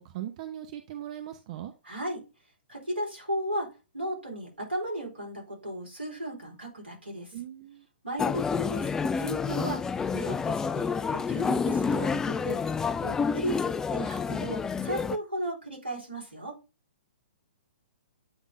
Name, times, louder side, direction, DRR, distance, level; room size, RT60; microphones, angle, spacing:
voice 1, 0.0-1.7 7.3-7.9, right 12 dB, 40° right, 0.7 m, -39 dB
voice 2, 1.8-2.2 2.7-7.3 8.0-8.9 9.2-9.8 10.1-12.6 13.0-16.6, right 1 dB, 85° right, 4.2 m, -35 dB
sound 1, 8.2-15.2, left 5 dB, 10° left, 0.3 m, -29 dB
8.8 x 3.6 x 3.6 m
figure-of-eight pair, 120°, 6 cm